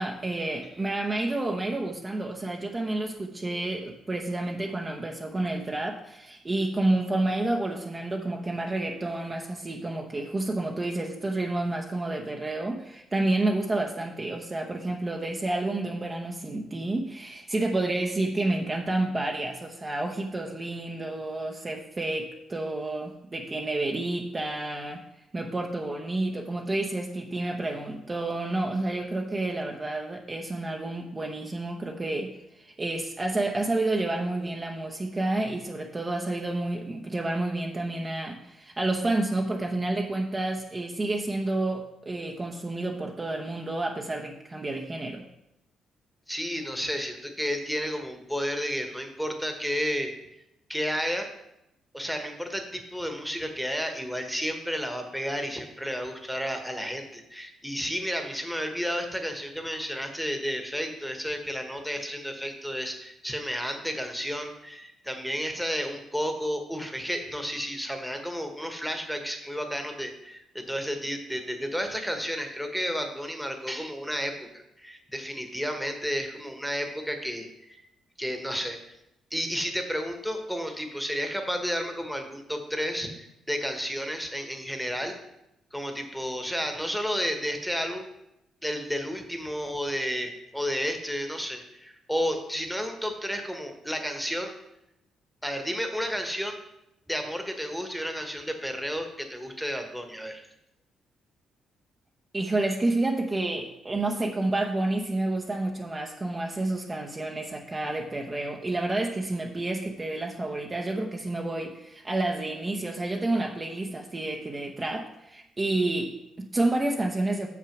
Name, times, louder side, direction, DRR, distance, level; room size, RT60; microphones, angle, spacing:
voice 1, 0.0-25.0 25.3-45.2 102.3-117.5, right 2 dB, 25° right, 1 dB, 0.8 m, -29 dB
voice 2, 46.3-50.1 50.7-51.3 51.9-77.8 78.2-78.8 79.3-85.2 85.7-88.1 88.6-94.5 95.4-96.6 97.1-100.4, equal, ahead, 5 dB, 1.2 m, -32 dB
6.6 x 6.0 x 5.9 m, 0.86 s
cardioid pair, 90°, 0 cm